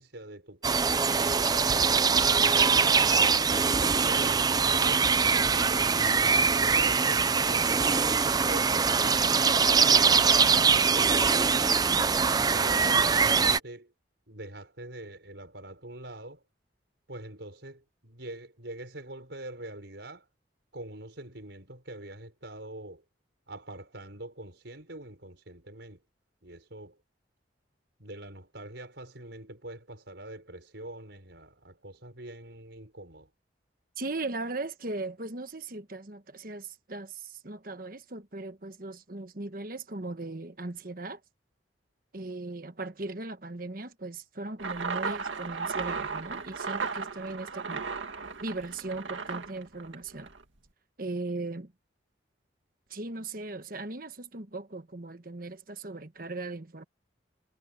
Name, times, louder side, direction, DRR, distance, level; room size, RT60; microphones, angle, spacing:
voice 1, 0.0-1.7 2.0-5.1 5.6-11.9 12.5-13.9 14.3-16.4 17.1-20.3 20.7-23.0 23.5-26.0 26.4-27.0 28.0-33.3, right 1 dB, 70° right, 5.5 m, -44 dB
sound 1, 0.6-13.6, right 5 dB, 20° right, 0.4 m, -23 dB
voice 2, 34.0-41.2 42.1-47.9 48.4-50.3 51.0-51.7 52.9-56.8, right 2 dB, 50° right, 1.3 m, -38 dB
sound 2, 44.6-50.4, right 5 dB, 85° right, 2.3 m, -35 dB
head